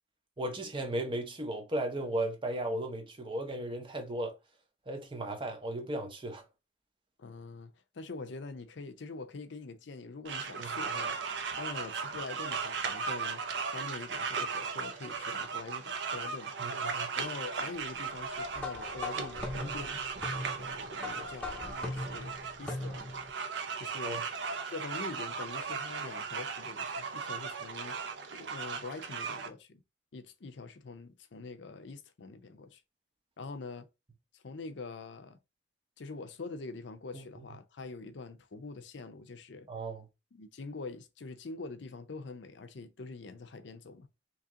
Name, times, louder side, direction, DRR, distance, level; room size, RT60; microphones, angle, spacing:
voice 1, 0.4-4.3 4.9-6.4 10.6-10.7 16.6-17.1 24.0-24.2 37.1-37.2 39.7-40.1, right 1 dB, 25° right, 0.7 m, -35 dB
voice 2, 7.2-11.2 11.6-13.4 13.7-20.0 20.5-23.1 23.8-24.2 24.7-28.1 28.4-29.8 30.1-32.8 33.4-33.9 34.3-35.4 36.0-39.7 40.3-44.1, left 3 dB, 70° left, 0.5 m, -44 dB
sound 1, 10.2-29.5, right 5 dB, 65° right, 0.6 m, -37 dB
sound 2, 18.5-23.3, left 2 dB, 5° left, 0.9 m, -40 dB
2.9 x 2.8 x 3.6 m
head